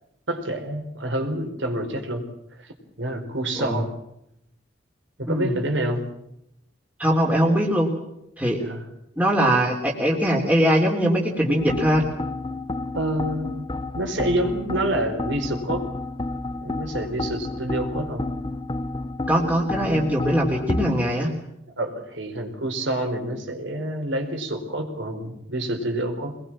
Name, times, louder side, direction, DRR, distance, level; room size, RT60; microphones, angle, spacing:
voice 1, 0.3-2.2 2.6-3.9 5.2-6.0 8.6-8.8 12.9-13.7 13.9-15.8 16.6-18.2 21.8-26.3, right 1 dB, 75° right, 5 dB, 4.5 m, -27 dB
voice 2, 7.0-7.9 8.4-8.6 9.2-12.1 19.3-21.3, equal, 10° right, -1 dB, 3.5 m, -21 dB
sound 1, 11.6-20.9, left 2 dB, 25° left, 1.0 m, -30 dB
24.0 x 21.0 x 7.5 m, 0.81 s
head